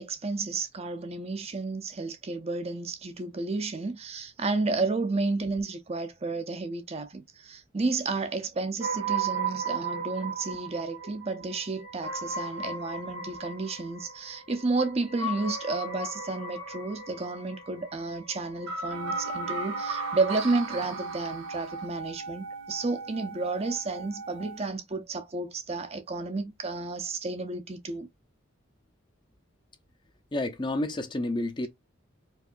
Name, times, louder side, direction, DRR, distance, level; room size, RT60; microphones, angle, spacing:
voice 1, 0.0-28.1, right 3 dB, 30° right, 0.5 m, -31 dB
sound 1, 8.8-21.9, right 4 dB, 75° right, 1.5 m, -36 dB
sound 2, 18.9-24.7, right 3 dB, 60° right, 1.0 m, -39 dB
voice 2, 30.3-31.7, left 1 dB, 25° left, 0.6 m, -30 dB
4.7 x 2.6 x 2.5 m
head